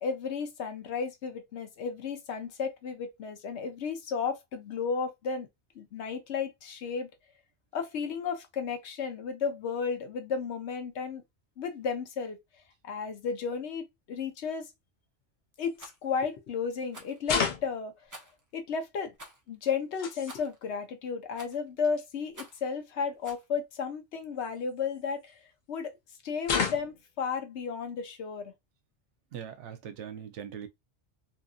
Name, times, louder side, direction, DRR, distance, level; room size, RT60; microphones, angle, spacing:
voice 1, 0.0-5.5 5.8-7.1 7.7-11.2 11.6-12.4 12.8-14.7 15.6-17.9 18.5-19.1 19.5-25.4 25.7-25.9 26.2-28.5, left 6 dB, 70° left, 1.0 m, -33 dB
sound 1, 15.6-15.8 17.2-17.8 19.6-20.4 21.5-21.6 21.8-22.1 23.2-23.3 24.4-25.3 26.4-27.1, left 6 dB, 50° left, 0.7 m, -32 dB
Rattle, 15.7-16.0 16.9-17.2 18.1-18.4 19.2-19.4 20.3-20.6 21.4-21.7 22.3-22.7 23.2-23.5, right 1 dB, 25° right, 0.4 m, -48 dB
voice 2, 29.3-30.7, right 8 dB, 85° right, 0.9 m, -41 dB
2.8 x 2.5 x 2.3 m
omnidirectional pair, 1.2 m